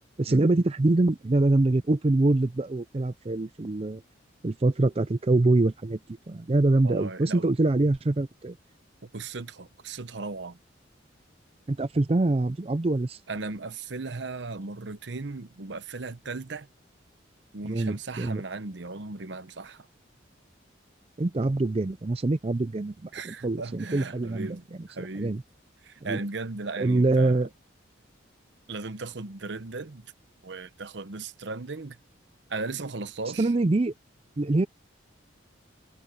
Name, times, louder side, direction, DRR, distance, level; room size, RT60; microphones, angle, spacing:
voice 1, 0.2-4.0 4.4-8.6 11.7-13.2 17.6-18.4 21.2-25.4 26.1-26.2 26.8-27.5 33.4-33.9 34.4-34.7, right 2 dB, 30° right, 0.5 m, -24 dB
voice 2, 6.8-7.5 9.0-10.6 13.3-16.7 17.5-19.9 23.1-25.4 25.8-27.4 28.7-30.1 30.4-32.0 32.5-33.5, right 3 dB, 65° right, 0.9 m, -37 dB
head